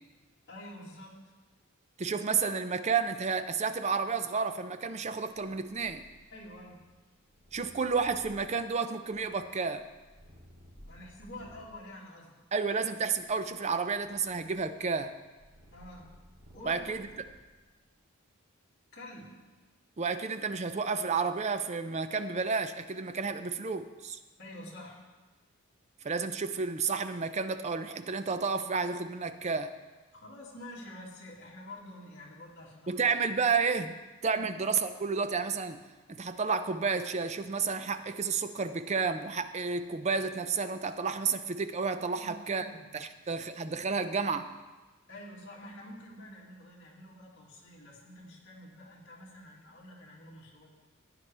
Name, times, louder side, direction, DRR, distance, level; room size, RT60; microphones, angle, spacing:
voice 1, 0.5-1.3 6.3-6.8 10.9-12.3 15.7-16.2 16.5-16.9 18.9-19.4 24.4-25.1 30.1-33.0 33.4-33.5 34.3-34.5 42.1-42.8 45.1-50.7, left 1 dB, 55° left, -4 dB, 2.4 m, -48 dB
voice 2, 2.0-6.0 7.5-9.9 12.5-15.1 16.6-17.1 20.0-24.2 26.0-29.7 32.9-34.0 34.2-35.8 36.1-42.7 42.9-44.5, right 5 dB, 30° right, 10 dB, 0.5 m, -31 dB
Purr, 5.3-11.8 12.5-17.7, equal, 80° right, 3.1 m, -57 dB
15.0 x 9.8 x 3.4 m, 1.2 s
head